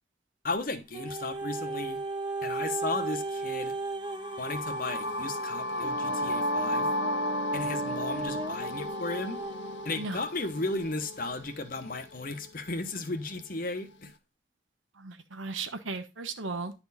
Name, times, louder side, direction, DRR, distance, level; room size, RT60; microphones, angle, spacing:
voice 1, 0.4-2.0 2.4-3.7 4.4-6.9 7.5-9.4 9.8-14.1, left 2 dB, 45° left, 1.1 m, -35 dB
sound 1, 0.9-10.0 10.7-10.8, right 3 dB, 25° right, 0.9 m, -36 dB
sound 2, 4.0-12.0, left 1 dB, 65° left, 0.6 m, -33 dB
voice 2, 15.0-16.7, right 3 dB, 90° right, 1.2 m, -36 dB
10.5 x 4.4 x 4.2 m
head